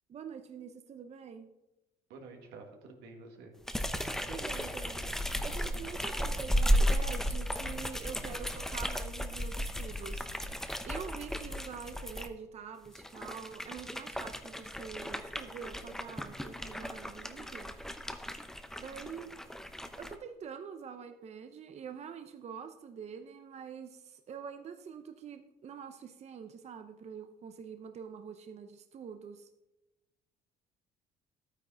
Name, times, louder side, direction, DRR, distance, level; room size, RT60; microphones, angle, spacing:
voice 1, 0.1-1.5 4.3-5.1 5.4-17.7 18.8-19.3 20.0-29.5, right 7 dB, 40° right, 8 dB, 0.7 m, -46 dB
voice 2, 2.1-3.5, right 3 dB, 85° right, 3 dB, 2.0 m, -49 dB
sound 1, 3.7-12.3 12.9-20.2, equal, 5° left, 0.8 m, -34 dB
12.0 x 9.1 x 3.9 m, 0.97 s
cardioid pair, 110°, 17 cm